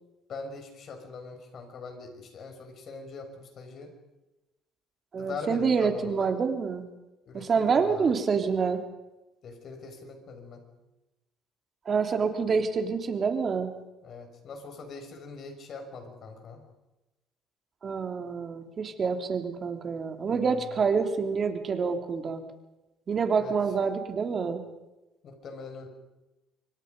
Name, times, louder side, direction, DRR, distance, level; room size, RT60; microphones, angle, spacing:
voice 1, 0.3-3.9 5.2-6.3 7.3-8.1 9.4-10.6 14.0-16.7 20.3-20.8 23.4-23.5 25.2-25.9, left 4 dB, 55° left, 5 dB, 6.0 m, -42 dB
voice 2, 5.1-6.8 7.3-8.8 11.8-13.7 17.8-22.4 23.1-24.6, right 5 dB, 40° right, 5 dB, 3.0 m, -27 dB
27.0 x 24.0 x 5.4 m, 1.0 s
cardioid pair, 95°, 0 cm